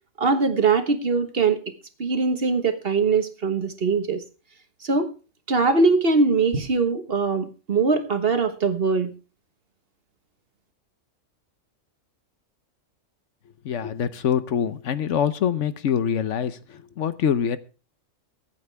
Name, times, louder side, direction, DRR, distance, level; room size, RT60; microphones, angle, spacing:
voice 1, 0.2-1.6 2.0-4.2 4.8-5.1 5.5-9.1, right 4 dB, 50° right, 8 dB, 1.5 m, -21 dB
voice 2, 13.6-17.6, left 8 dB, 70° left, 13 dB, 1.1 m, -25 dB
23.5 x 8.8 x 3.4 m, 0.34 s
omnidirectional pair, 1.3 m